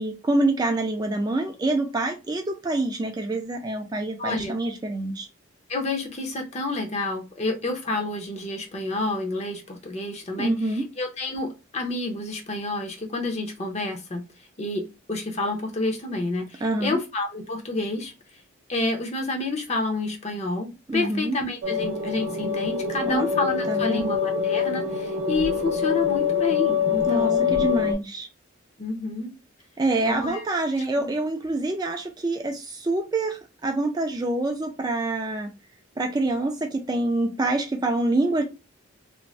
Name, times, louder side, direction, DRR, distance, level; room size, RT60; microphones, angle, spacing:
voice 1, 0.0-5.3 10.4-10.9 16.6-17.0 20.9-21.4 23.1-23.2 23.7-24.1 27.1-28.3 29.8-35.5 36.0-38.4, right 2 dB, 20° right, 0.3 m, -26 dB
voice 2, 4.2-4.6 5.7-14.2 14.6-18.1 18.7-27.6 28.8-29.3 30.0-30.5 31.0-31.1, left 2 dB, 35° left, 0.6 m, -29 dB
sound 1, 21.6-27.9, left 7 dB, 85° right, 0.6 m, -25 dB
2.5 x 2.0 x 3.1 m
head